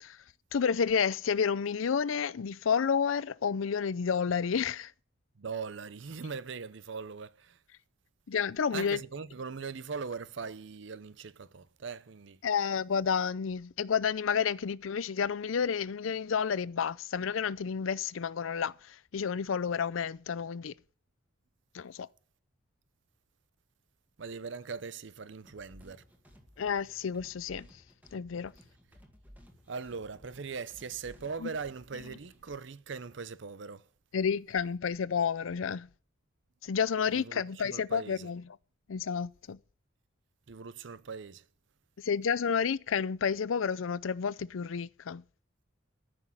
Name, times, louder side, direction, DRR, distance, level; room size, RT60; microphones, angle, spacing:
voice 1, 0.5-4.9 8.3-9.0 12.4-20.7 21.7-22.1 26.6-27.7 28.1-28.5 31.4-31.5 34.1-35.9 36.6-38.4 38.9-39.6 42.0-45.2, left 6 dB, 80° left, 0.5 m, -30 dB
voice 2, 5.4-7.6 8.7-12.4 24.2-26.0 29.7-33.9 37.1-38.3 40.5-41.5, right 5 dB, 60° right, 0.6 m, -40 dB
sound 1, 25.4-32.6, equal, 10° right, 1.8 m, -57 dB
13.5 x 6.1 x 7.3 m
head